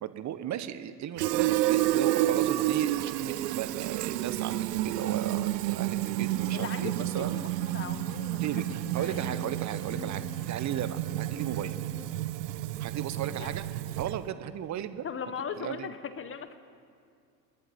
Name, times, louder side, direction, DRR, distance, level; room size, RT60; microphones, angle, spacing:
voice 1, 0.0-7.4 8.4-11.8 12.8-15.0 15.6-15.9, right 10 dB, 35° right, 12 dB, 1.0 m, -36 dB
Fill (with liquid), 1.2-14.3, right 15 dB, 70° right, 0.7 m, -30 dB
sound 1, 4.7-12.2, left 6 dB, 60° left, 1.9 m, -49 dB
voice 2, 6.5-9.4 13.4-13.6 15.0-16.6, left 7 dB, 25° left, 12 dB, 0.9 m, -39 dB
28.0 x 11.0 x 4.3 m, 2.3 s
figure-of-eight pair, 70°, 50 cm